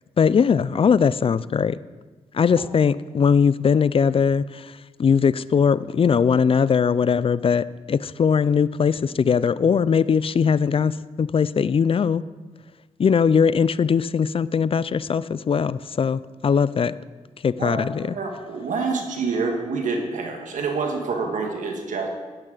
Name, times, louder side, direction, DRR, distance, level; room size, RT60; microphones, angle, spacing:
voice 1, 0.2-1.8 2.3-4.7 5.0-12.2 13.0-16.9 17.4-18.2, left 6 dB, 45° left, 18 dB, 0.4 m, -20 dB
voice 2, 17.6-22.1, right 4 dB, 80° right, 3 dB, 1.6 m, -27 dB
11.5 x 9.4 x 3.9 m, 1.3 s
cardioid pair, 55°, 13 cm